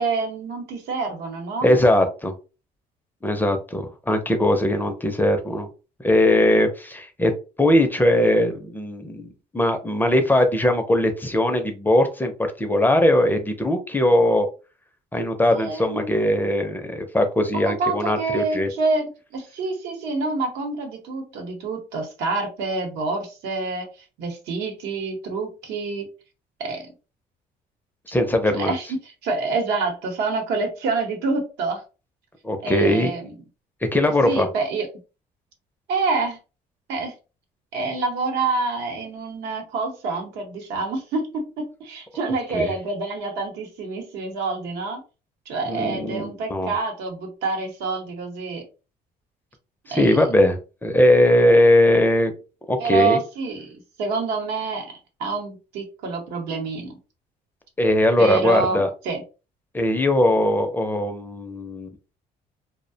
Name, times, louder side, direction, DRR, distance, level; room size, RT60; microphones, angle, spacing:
voice 1, 0.0-1.8 15.5-16.3 17.5-26.1 26.6-26.9 28.5-31.8 32.6-33.4 34.2-34.9 35.9-36.4 36.9-37.1 37.7-45.0 45.5-48.6 49.9-50.1 52.8-54.9 55.2-57.0 58.2-59.2, right 3 dB, 85° right, 2 dB, 0.9 m, -27 dB
voice 2, 1.6-2.3 3.2-5.7 6.0-7.3 7.6-12.3 12.6-14.5 15.1-18.7 28.1-28.7 32.4-33.1 33.9-34.5 42.5-42.7 45.7-46.7 49.9-52.3 52.7-53.2 57.8-58.9 59.7-61.9, left 1 dB, 10° left, 6 dB, 0.4 m, -20 dB
2.3 x 2.1 x 2.6 m, 0.32 s
cardioid pair, 110°, 17 cm